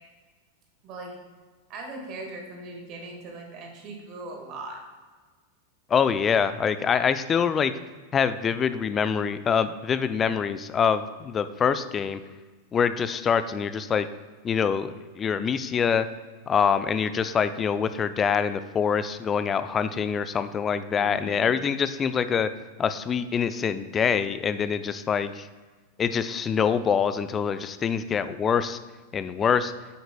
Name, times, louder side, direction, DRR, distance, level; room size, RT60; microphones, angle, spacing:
voice 1, 0.8-1.1 1.7-4.8 21.0-21.4, right 2 dB, 40° right, 1 dB, 1.7 m, -39 dB
voice 2, 5.9-7.7 8.1-12.2 12.7-14.1 14.4-16.1 16.5-22.5 22.8-25.5 26.0-28.8 29.1-29.7, left 7 dB, 25° left, 12 dB, 0.4 m, -25 dB
9.3 x 7.8 x 2.3 m, 1.4 s
figure-of-eight pair, 90°, 0 cm